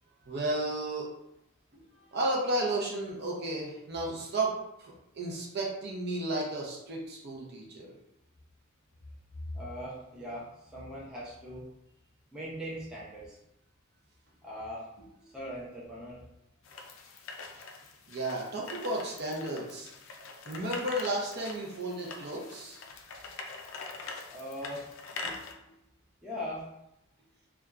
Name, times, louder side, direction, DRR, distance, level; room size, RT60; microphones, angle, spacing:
voice 1, 0.3-1.1 1.7-1.9 2.1-4.5 4.8-7.9 18.1-19.9 20.5-22.8 25.2-25.5, right 1 dB, 50° right, -2 dB, 0.5 m, -33 dB
voice 2, 9.5-11.7 12.3-13.4 14.4-14.9 15.3-16.2 24.3-24.9 26.2-26.7, equal, 5° right, -7 dB, 0.5 m, -40 dB
sound 1, 16.6-25.5, left 4 dB, 65° left, 0.3 m, -44 dB
2.8 x 2.2 x 2.3 m, 0.84 s
head